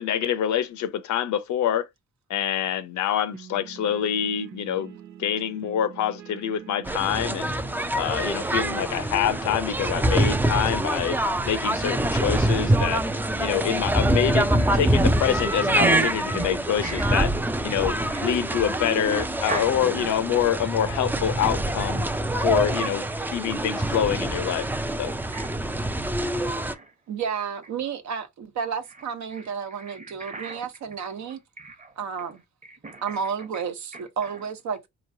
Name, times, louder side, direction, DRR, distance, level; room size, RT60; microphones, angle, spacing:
voice 1, 0.0-1.9 2.3-4.9 5.2-7.5 7.9-11.2 11.4-13.0 13.4-17.3 17.6-17.9 18.2-22.1 22.4-24.7 25.0-25.1, left 9 dB, 70° left, 0.7 m, -26 dB
sound 1, 3.3-21.6, right 10 dB, 90° right, 0.7 m, -45 dB
sound 2, 6.8-26.7, right 1 dB, 5° right, 0.4 m, -25 dB
voice 2, 15.8-16.5 16.8-17.1 18.1-18.2 19.5-19.7 25.3-25.5 26.4-26.9 29.3-29.4 29.8-30.7 31.6-31.9 32.7-33.2 33.5-33.6, right 2 dB, 25° right, 1.0 m, -33 dB
voice 3, 27.1-31.4 32.0-32.4 33.0-34.9, right 6 dB, 70° right, 0.9 m, -31 dB
4.3 x 3.1 x 2.6 m
cardioid pair, 90°, 30 cm